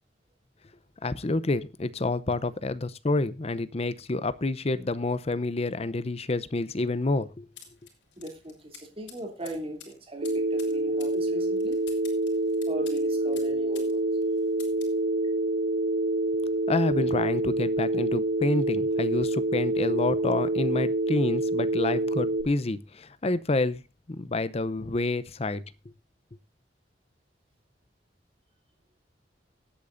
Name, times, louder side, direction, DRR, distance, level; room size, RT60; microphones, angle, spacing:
voice 1, 1.0-7.5 16.7-23.8 24.1-25.6, left 2 dB, 35° left, 0.7 m, -28 dB
sound 1, 7.6-13.9 14.2-15.0, left 7 dB, 90° left, 4.2 m, -50 dB
voice 2, 8.2-11.8 12.7-14.0, right 1 dB, 30° right, 3.0 m, -39 dB
Telephone, 10.2-22.4, right 2 dB, 55° right, 1.2 m, -27 dB
24.0 x 8.5 x 2.6 m
head